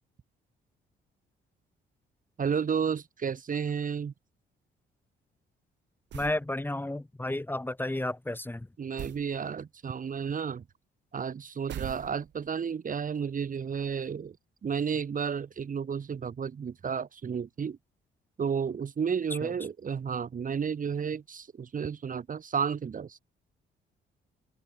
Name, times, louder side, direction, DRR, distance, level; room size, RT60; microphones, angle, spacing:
voice 1, 2.4-4.1 8.8-10.6 11.1-14.4 14.6-17.8 18.4-23.2, right 6 dB, 40° right, 1.9 m, -32 dB
voice 2, 6.1-8.7 19.4-19.5, left 1 dB, 10° left, 1.8 m, -32 dB
sound 1, 6.1-6.5 9.0-9.3 11.7-12.5, right 12 dB, 65° right, 0.8 m, -40 dB
open air
cardioid pair, 90°, 20 cm